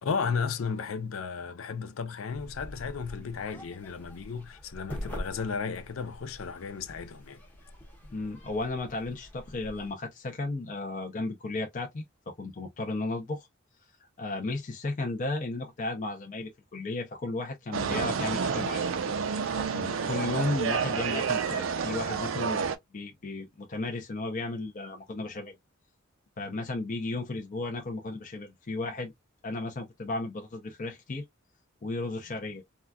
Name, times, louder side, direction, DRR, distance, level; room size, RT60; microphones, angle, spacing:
voice 1, 0.0-7.4, left 5 dB, 85° left, 0.5 m, -34 dB
sound 1, 2.3-9.9, equal, 10° left, 0.8 m, -44 dB
voice 2, 8.1-13.5 14.2-18.9 19.6-22.7 22.9-25.5 26.4-29.1 29.4-31.2 31.8-32.6, left 2 dB, 40° left, 0.6 m, -34 dB
sound 2, 17.7-22.8, right 6 dB, 70° right, 0.5 m, -29 dB
3.8 x 2.3 x 2.2 m
head